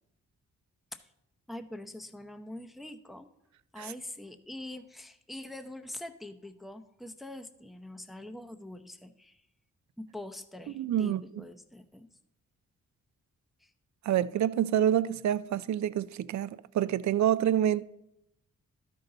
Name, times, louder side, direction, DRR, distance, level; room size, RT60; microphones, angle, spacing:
voice 1, 1.5-3.3 3.7-9.4 10.0-12.1 13.6-13.7, left 1 dB, ahead, 0.8 m, -44 dB
voice 2, 10.8-11.2 14.1-17.8, right 10 dB, 55° right, 0.5 m, -27 dB
12.5 x 5.6 x 3.9 m
supercardioid pair, 45°, 34 cm